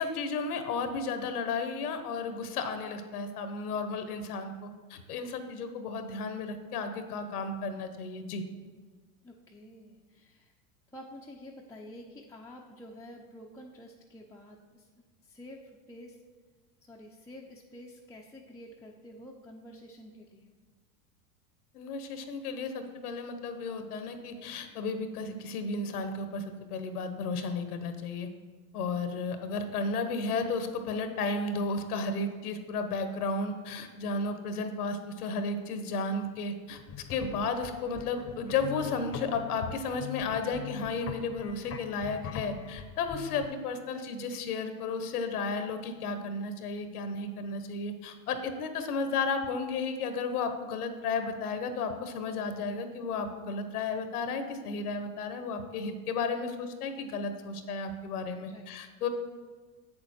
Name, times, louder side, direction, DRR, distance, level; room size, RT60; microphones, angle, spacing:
voice 1, 0.0-8.4 21.7-26.4 26.7-28.3 28.7-36.8 37.1-59.1, left 4 dB, 85° left, 8 dB, 1.1 m, -33 dB
voice 2, 9.2-10.5 10.9-15.6 15.9-16.2 16.8-20.5 58.5-58.9, left 1 dB, 5° left, -4 dB, 0.6 m, -49 dB
sound 1, 36.7-43.5, left 8 dB, 35° left, 0.9 m, -42 dB
7.8 x 6.9 x 4.4 m, 1.4 s
hypercardioid pair, 100°, 44 cm